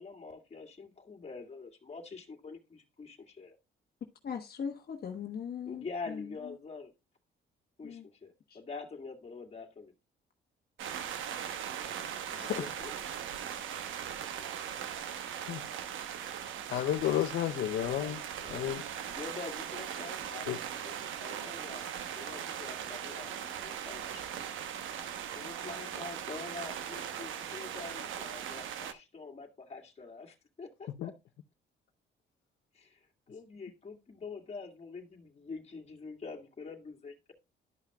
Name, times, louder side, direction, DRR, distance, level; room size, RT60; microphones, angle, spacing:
voice 1, 0.0-3.6 5.7-6.9 7.8-9.9 12.6-12.9 17.8-24.5 25.3-31.1 32.7-33.0 33.3-37.3, left 4 dB, 30° left, 2.0 m, -46 dB
voice 2, 4.2-6.3 7.8-8.0, left 7 dB, 55° left, 1.1 m, -39 dB
sound 1, 10.8-28.9, right 9 dB, 80° right, 0.9 m, -39 dB
voice 3, 16.7-18.2 18.5-18.8 20.5-20.6 31.0-31.1, left 11 dB, 70° left, 0.6 m, -31 dB
12.0 x 5.7 x 2.2 m
cardioid pair, 90°, 20 cm